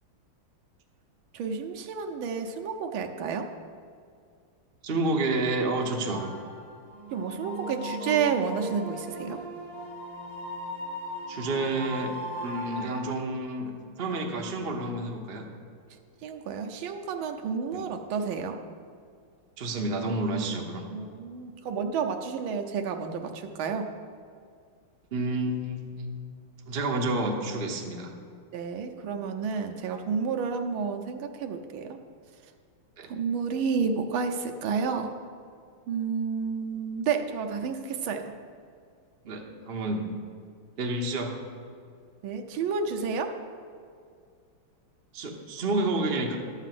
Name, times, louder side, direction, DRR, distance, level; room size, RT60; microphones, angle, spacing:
voice 1, 1.3-3.5 7.1-9.4 16.2-18.6 20.9-23.9 28.5-32.0 33.1-35.1 35.9-38.3 42.2-43.3, right 6 dB, 75° right, 4 dB, 1.4 m, -30 dB
voice 2, 4.8-6.2 11.3-12.1 12.4-13.7 14.0-15.4 17.7-17.8 19.6-20.9 25.1-26.2 26.7-28.1 29.9-30.0 33.0-33.1 39.2-40.1 40.8-41.3 45.1-46.4, right 2 dB, 60° right, 1 dB, 0.6 m, -29 dB
sound 1, 6.1-13.0, right 1 dB, 25° right, 2.8 m, -37 dB
11.5 x 4.1 x 7.5 m, 2.2 s
omnidirectional pair, 2.4 m